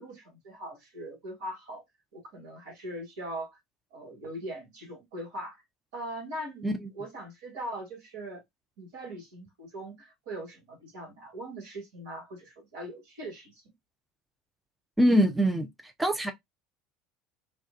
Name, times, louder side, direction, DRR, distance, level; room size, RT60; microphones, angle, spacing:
voice 1, 0.0-1.8 2.1-3.6 3.9-5.6 5.9-6.7 6.9-8.4 8.8-13.6, right 1 dB, 70° right, 1.5 m, -40 dB
voice 2, 15.0-16.3, equal, 10° right, 0.5 m, -24 dB
2.3 x 2.3 x 2.4 m
hypercardioid pair, 70°, 0 cm